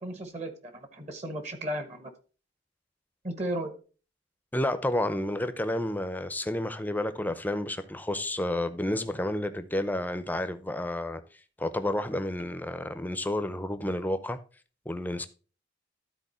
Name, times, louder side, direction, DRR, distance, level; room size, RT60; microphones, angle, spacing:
voice 1, 0.0-2.1 3.2-3.7, right 1 dB, 35° right, 1.2 m, -35 dB
voice 2, 4.5-11.2 11.6-14.4 14.9-15.3, left 1 dB, 10° left, 0.6 m, -30 dB
12.5 x 4.3 x 4.3 m
head